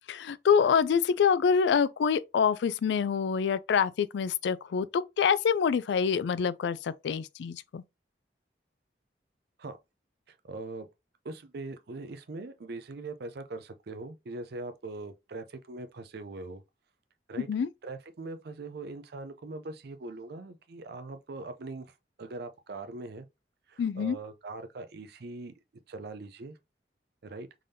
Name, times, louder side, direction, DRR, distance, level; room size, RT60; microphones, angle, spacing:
voice 1, 0.1-7.8 17.5-17.7 23.8-24.2, left 6 dB, 70° left, 0.3 m, -26 dB
voice 2, 10.3-10.9 11.2-16.6 17.3-17.5 17.8-21.9 22.2-23.3 23.7-25.5 25.9-26.6 27.2-27.5, right 3 dB, 65° right, 0.5 m, -41 dB
3.7 x 3.3 x 2.7 m
head